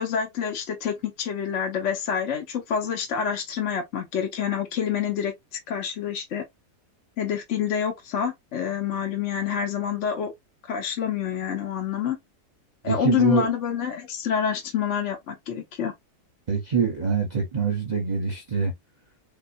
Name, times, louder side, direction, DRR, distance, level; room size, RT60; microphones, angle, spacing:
voice 1, 0.0-6.4 7.2-10.3 10.7-12.2 12.8-15.9, left 8 dB, 55° left, 1.0 m, -27 dB
voice 2, 12.8-13.5 16.5-18.7, right 6 dB, 30° right, 0.9 m, -25 dB
3.9 x 2.9 x 2.6 m
omnidirectional pair, 1.7 m